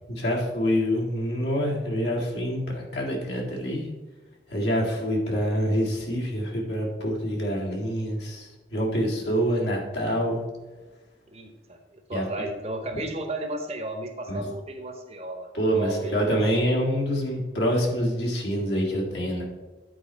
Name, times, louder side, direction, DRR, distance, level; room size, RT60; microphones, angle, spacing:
voice 1, 0.1-3.9 4.5-10.4 12.1-12.3 14.3-14.4 15.5-19.4, equal, 75° left, -2 dB, 1.8 m, -26 dB
voice 2, 11.3-15.5 15.8-16.4, right 1 dB, 35° right, 4 dB, 0.9 m, -34 dB
8.9 x 4.5 x 4.2 m, 1.2 s
head